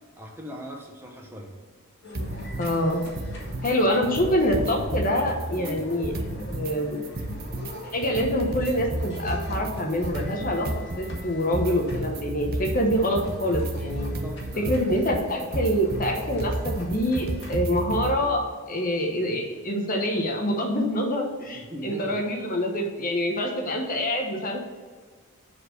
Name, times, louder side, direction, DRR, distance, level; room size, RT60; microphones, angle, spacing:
voice 1, 0.2-1.5 5.6-5.9 14.1-14.9 21.5-22.2, equal, 10° right, 0 dB, 1.0 m, -39 dB
sound 1, 2.0-17.6, left 1 dB, 55° left, 1.9 m, -42 dB
sound 2, 2.1-2.7 3.0-3.7 4.0-6.7 7.0-18.2, right 1 dB, 45° right, 0.8 m, -32 dB
voice 2, 2.6-3.0 3.6-6.1 6.4-7.1 7.9-10.7 11.0-14.1 14.6-24.6, equal, 40° left, 2 dB, 1.1 m, -26 dB
7.4 x 4.5 x 6.7 m, 1.5 s
head